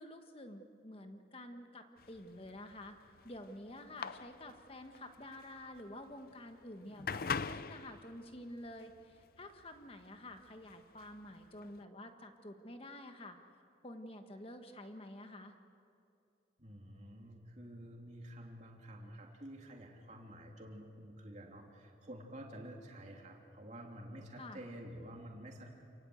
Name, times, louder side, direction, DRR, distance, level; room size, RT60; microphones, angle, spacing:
voice 1, 0.0-3.0 3.2-13.4 13.8-15.6 24.4-24.6, left 1 dB, 30° left, 6 dB, 1.5 m, -49 dB
sound 1, 2.0-11.8, left 5 dB, 50° left, 0.5 m, -44 dB
voice 2, 16.6-25.7, equal, 40° right, 0 dB, 3.2 m, -50 dB
28.5 x 19.0 x 8.0 m, 2.6 s
head